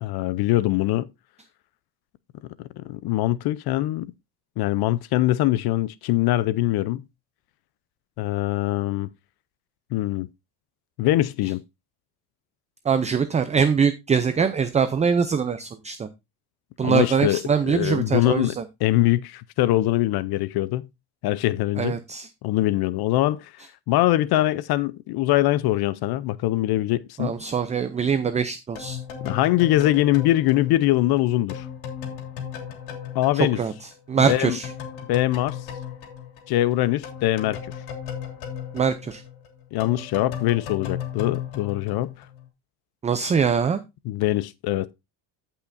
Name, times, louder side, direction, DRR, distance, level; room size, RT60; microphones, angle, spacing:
voice 1, 0.0-1.1 2.8-4.1 4.6-7.0 8.2-9.1 9.9-10.3 11.0-11.6 16.8-20.9 21.2-22.0 22.4-23.5 23.9-27.3 29.2-31.7 33.1-33.6 34.2-34.6 35.1-35.6 36.5-37.7 39.7-42.1 44.1-44.9, left 15 dB, 55° left, 0.5 m, -23 dB
voice 2, 12.9-16.1 16.8-18.6 21.8-22.3 27.2-29.0 33.6-33.7 34.1-34.7 38.7-39.2 43.0-43.8, right 6 dB, 15° right, 0.4 m, -23 dB
sound 1, 28.7-34.0 34.3-42.5, left 8 dB, 85° left, 3.1 m, -36 dB
15.0 x 5.8 x 2.5 m
cardioid pair, 145°, 45 cm